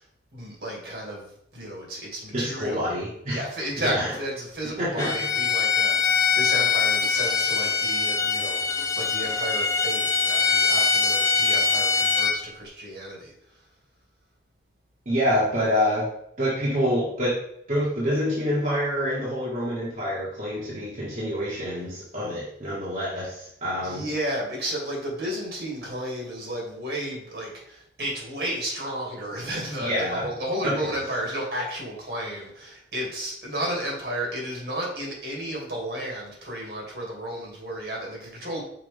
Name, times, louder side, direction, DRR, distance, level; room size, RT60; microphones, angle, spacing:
voice 1, 0.3-3.0 3.3-8.6 8.9-13.3 23.2-23.3 23.8-38.6, right 1 dB, 65° right, -2 dB, 2.3 m, -32 dB
voice 2, 2.3-4.1 4.8-5.1 15.0-16.1 16.4-17.4 17.7-24.1 29.8-30.3 30.6-30.7, equal, 45° right, -8 dB, 1.6 m, -27 dB
Bowed string instrument, 5.0-12.4, left 5 dB, 20° left, 0.6 m, -23 dB
6.1 x 4.5 x 3.5 m, 0.72 s
head